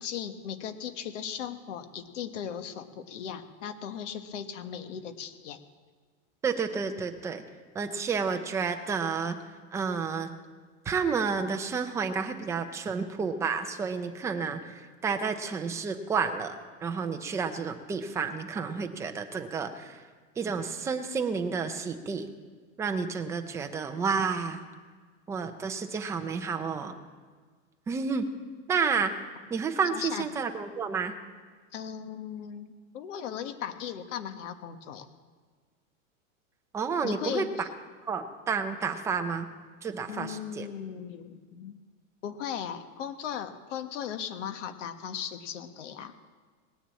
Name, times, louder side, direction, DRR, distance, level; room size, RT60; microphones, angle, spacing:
voice 1, 0.0-5.6 29.9-30.3 31.7-32.7 32.9-35.1 37.0-37.5 40.1-41.8 42.2-46.2, left 8 dB, 65° left, 9 dB, 1.4 m, -37 dB
voice 2, 6.4-7.4 7.7-9.4 9.7-10.3 10.9-16.5 16.8-20.0 20.4-22.3 22.8-24.6 25.3-27.0 27.9-28.3 28.7-29.1 29.5-31.2 36.7-37.7 38.1-39.5 39.8-40.7, right 5 dB, 10° right, 6 dB, 0.4 m, -30 dB
19.5 x 7.1 x 8.6 m, 1.5 s
supercardioid pair, 160°, 39 cm